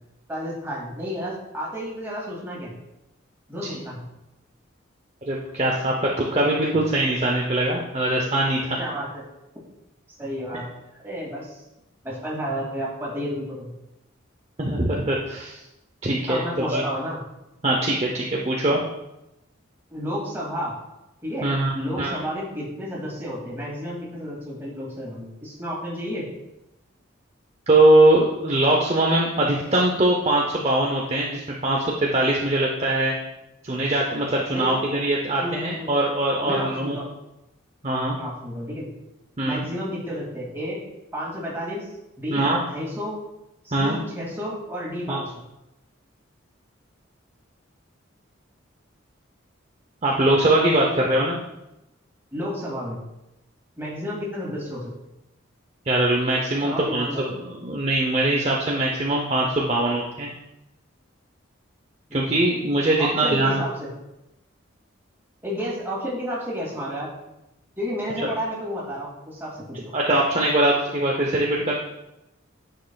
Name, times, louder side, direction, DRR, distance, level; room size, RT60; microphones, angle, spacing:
voice 1, 0.3-2.7 3.5-4.0 6.7-6.8 8.8-9.2 10.1-10.7 11.0-11.6 12.0-13.7 16.3-17.2 19.9-20.8 21.2-26.3 34.5-34.7 35.4-35.9 36.4-37.1 38.2-38.9 39.4-40.8 41.1-41.9 42.2-43.2 43.6-45.3 50.8-50.9 52.3-53.0 53.8-54.9 56.6-57.3 62.1-62.3 63.0-63.9 65.4-67.1 67.8-69.9, equal, 10° right, -5 dB, 2.3 m, -31 dB
voice 2, 5.2-8.8 14.6-15.6 16.0-16.8 17.6-18.8 21.4-22.2 27.7-33.1 33.6-37.0 37.8-38.2 39.4-39.6 42.3-42.6 43.7-44.0 45.1-45.2 50.0-51.4 55.9-60.3 62.1-63.6 69.9-71.7, right 1 dB, 30° right, -1 dB, 0.7 m, -22 dB
9.5 x 6.5 x 2.3 m, 0.91 s
head